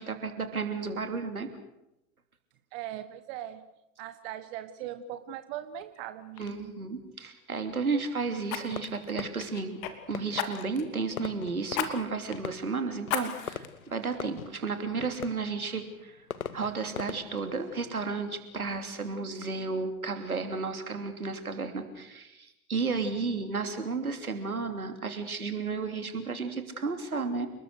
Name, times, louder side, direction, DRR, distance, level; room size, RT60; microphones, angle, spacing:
voice 1, 0.0-1.5 6.4-9.8 10.1-16.2 16.5-27.5, right 4 dB, 85° right, 7 dB, 3.1 m, -33 dB
voice 2, 2.7-3.6 4.0-6.7, right 11 dB, 50° right, 11 dB, 1.4 m, -40 dB
Fire, 5.8-6.0 6.4-6.6 8.5-9.9 10.4-10.9 11.7-11.9 12.3-12.4 13.1-13.7 14.2-14.3, left 10 dB, 45° left, 2.8 m, -34 dB
Fireworks, 8.7-19.3, left 7 dB, 80° left, 1.2 m, -44 dB
29.5 x 20.0 x 6.6 m, 0.88 s
figure-of-eight pair, 85°, 42 cm